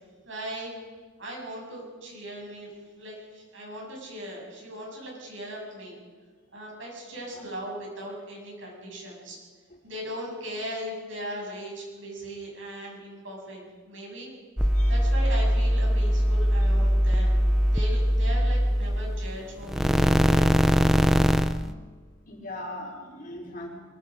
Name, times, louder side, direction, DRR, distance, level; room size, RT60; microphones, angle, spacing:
voice 1, 0.3-0.7 1.2-2.7 2.9-6.0 6.5-9.4 9.8-14.3 14.9-17.4 17.7-21.1, equal, 65° right, -2 dB, 7.9 m, -38 dB
nois-hum, 14.6-19.4 19.6-21.7, equal, ahead, 0.6 m, -22 dB
voice 2, 22.3-23.7, left 1 dB, 40° left, -2 dB, 4.9 m, -39 dB
23.5 x 23.0 x 5.3 m, 1.5 s
head